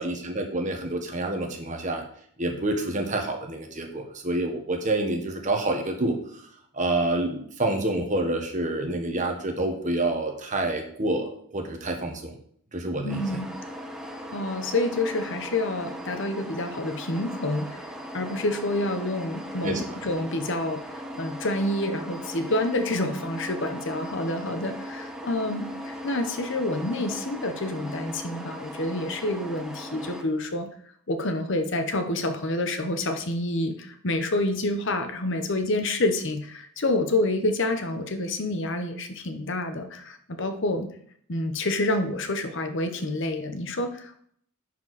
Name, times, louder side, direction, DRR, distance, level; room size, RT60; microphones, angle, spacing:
voice 1, 0.0-2.0 2.4-6.4 6.7-12.3 12.7-13.2 19.6-19.8, right 2 dB, 35° right, 3 dB, 1.3 m, -28 dB
voice 2, 13.0-13.5 14.3-30.7 31.1-40.9 41.3-44.2, left 2 dB, 55° left, 7 dB, 0.9 m, -28 dB
sound 1, 13.1-30.2, equal, 5° right, 0.9 m, -38 dB
11.0 x 4.7 x 4.1 m, 0.63 s
head